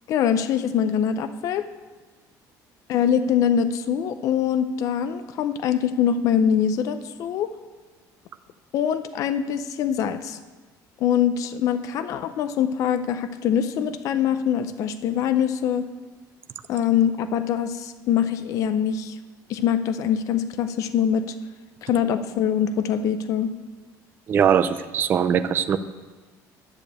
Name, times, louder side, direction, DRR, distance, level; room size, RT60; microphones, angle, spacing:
voice 1, 0.1-1.6 2.9-7.5 8.7-10.4 11.0-15.8 16.7-19.2 19.5-21.2 21.8-23.5, left 8 dB, 50° left, 10 dB, 0.6 m, -23 dB
voice 2, 24.3-25.8, right 8 dB, 30° right, 11 dB, 0.4 m, -21 dB
10.5 x 6.7 x 8.4 m, 1.4 s
cardioid pair, 175°, 7 cm